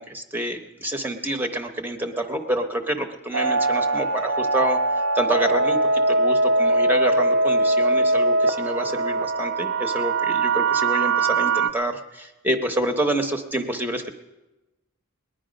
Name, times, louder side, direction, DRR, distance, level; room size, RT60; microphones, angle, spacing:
voice 1, 0.0-14.1, right 1 dB, 10° right, 5 dB, 0.7 m, -28 dB
sound 1, 3.3-11.7, right 2 dB, 60° right, 0.4 m, -21 dB
19.5 x 10.5 x 5.1 m, 1.1 s
head